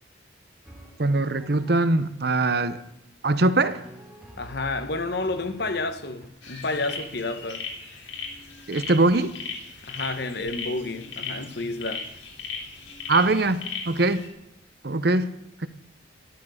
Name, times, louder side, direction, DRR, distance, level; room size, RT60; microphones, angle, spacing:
Drum, 0.6-2.1 3.2-6.3, equal, 5° right, 3.0 m, -48 dB
voice 1, 1.0-2.8 3.2-3.8 8.7-9.3 13.1-14.2 14.8-15.3, right 2 dB, 55° right, 0.9 m, -22 dB
voice 2, 4.4-7.7 9.8-12.1, left 2 dB, 60° left, 1.4 m, -30 dB
sound 1, 6.4-14.3, left 5 dB, 80° left, 3.6 m, -37 dB
13.0 x 12.5 x 6.5 m
head